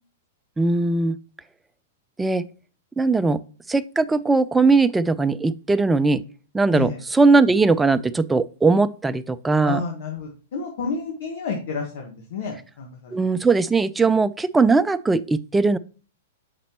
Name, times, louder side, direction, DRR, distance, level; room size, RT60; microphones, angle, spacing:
voice 1, 0.6-1.2 2.2-2.5 3.0-3.4 3.7-6.2 6.5-9.8 13.1-15.8, right 3 dB, 10° right, 13 dB, 0.3 m, -19 dB
voice 2, 9.6-13.2 14.0-14.1, left 5 dB, 65° left, 1 dB, 1.4 m, -30 dB
7.2 x 5.1 x 2.9 m, 0.39 s
hypercardioid pair, 120°, 0 cm